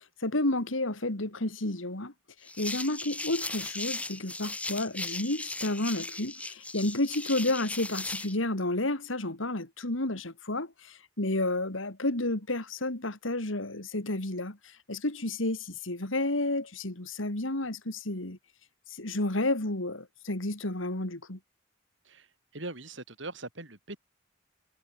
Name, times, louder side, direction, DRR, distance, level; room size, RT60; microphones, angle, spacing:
voice 1, 0.2-2.1 2.6-14.6 14.9-18.4 19.0-21.4, left 2 dB, 90° left, 3.3 m, -31 dB
sound 1, 2.5-8.4, left 2 dB, 5° left, 0.9 m, -37 dB
voice 2, 22.0-24.0, right 2 dB, 70° right, 5.2 m, -41 dB
head